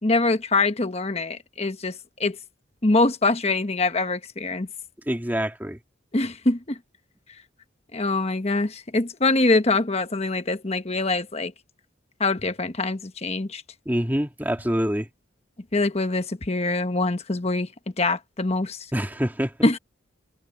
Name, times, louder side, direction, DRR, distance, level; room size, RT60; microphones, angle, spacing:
voice 1, 0.0-2.4 2.8-4.7 6.1-6.8 7.9-11.5 12.2-13.6 15.7-17.7 18.0-18.9 19.6-19.8, left 2 dB, 30° left, 1.1 m, -24 dB
voice 2, 5.1-5.8 13.9-15.1 18.9-19.7, equal, 10° right, 2.5 m, -26 dB
head